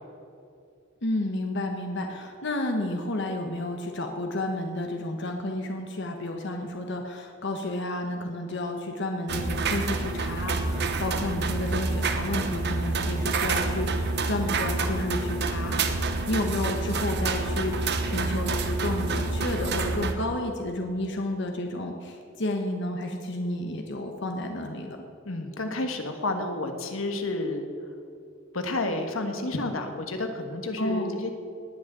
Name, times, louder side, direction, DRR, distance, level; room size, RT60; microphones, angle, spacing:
voice 1, 1.0-15.8 16.3-25.0 30.8-31.2, left 1 dB, 60° left, 3 dB, 1.2 m, -31 dB
sound 1, 9.3-20.1, right 3 dB, 55° right, 1.1 m, -28 dB
voice 2, 25.2-27.7 28.5-31.3, left 2 dB, 85° left, 6 dB, 1.6 m, -30 dB
19.0 x 6.5 x 8.9 m, 2.5 s
head